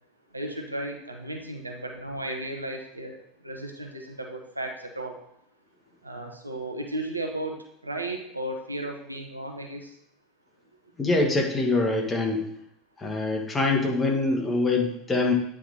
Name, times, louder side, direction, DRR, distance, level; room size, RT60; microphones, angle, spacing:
voice 1, 0.3-3.2 3.4-5.2 6.0-7.6 7.8-9.9, right 1 dB, 90° right, 3 dB, 1.0 m, -34 dB
voice 2, 11.0-12.4 13.0-15.3, left 2 dB, 20° left, 1 dB, 1.7 m, -24 dB
9.0 x 3.7 x 4.3 m, 0.76 s
figure-of-eight pair, 75°, 0 cm